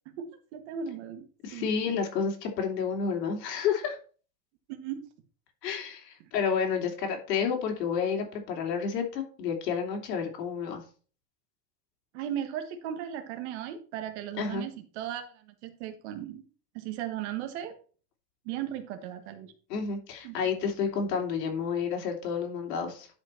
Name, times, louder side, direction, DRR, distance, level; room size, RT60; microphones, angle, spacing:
voice 1, 0.5-1.2 1.5-1.7 4.7-5.0 12.1-16.4 16.7-17.7 18.4-19.5 20.2-20.4, right 10 dB, 45° right, 6 dB, 1.6 m, -36 dB
voice 2, 1.4-4.0 5.6-10.8 14.4-14.6 19.7-23.1, left 6 dB, 85° left, 2 dB, 3.3 m, -30 dB
11.0 x 5.3 x 4.4 m, 0.39 s
supercardioid pair, 175°, 48 cm